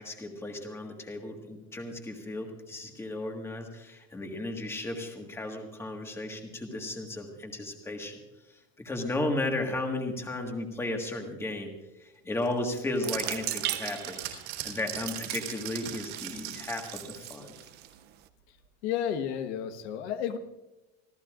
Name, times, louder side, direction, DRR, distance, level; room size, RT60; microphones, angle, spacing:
voice 1, 0.0-8.2 8.5-14.2 14.6-17.5, left 2 dB, 10° left, 2 dB, 1.6 m, -34 dB
sound 1, 12.4-17.9, right 13 dB, 60° right, 3.4 m, -40 dB
sound 2, 12.9-18.3, right 14 dB, 30° right, 0.6 m, -39 dB
voice 2, 18.8-20.4, left 9 dB, 75° left, 9 dB, 1.3 m, -31 dB
27.0 x 14.0 x 2.5 m, 1.0 s
cardioid pair, 180°, 33 cm